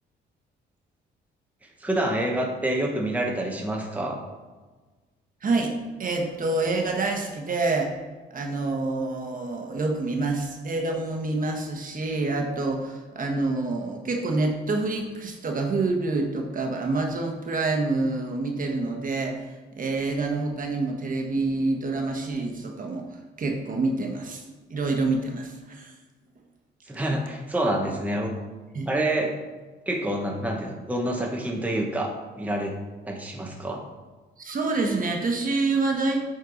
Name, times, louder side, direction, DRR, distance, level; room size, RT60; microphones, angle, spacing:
voice 1, 1.8-4.2 26.9-28.3 28.9-29.3 29.9-32.7 33.0-33.8, right 1 dB, 5° right, 0 dB, 1.0 m, -27 dB
voice 2, 6.0-7.9 8.3-19.4 19.8-23.0 23.4-24.4 24.7-25.9 27.1-27.2 28.7-28.9 34.4-36.2, right 3 dB, 45° right, 2 dB, 1.3 m, -27 dB
7.8 x 4.4 x 4.0 m, 1.3 s
cardioid pair, 90°, 20 cm